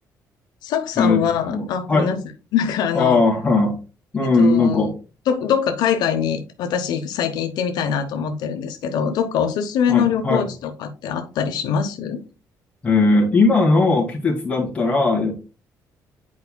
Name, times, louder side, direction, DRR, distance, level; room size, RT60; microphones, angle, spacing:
voice 1, 0.6-2.2 2.5-3.2 4.2-4.9 5.3-12.2, left 8 dB, 85° left, 6 dB, 0.8 m, -23 dB
voice 2, 1.5-2.1 2.9-3.8 4.1-4.9 9.1-9.2 9.9-10.5 12.8-15.3, left 3 dB, 20° left, -2 dB, 2.1 m, -18 dB
9.5 x 4.7 x 2.2 m, 0.32 s
cardioid pair, 135°, 7 cm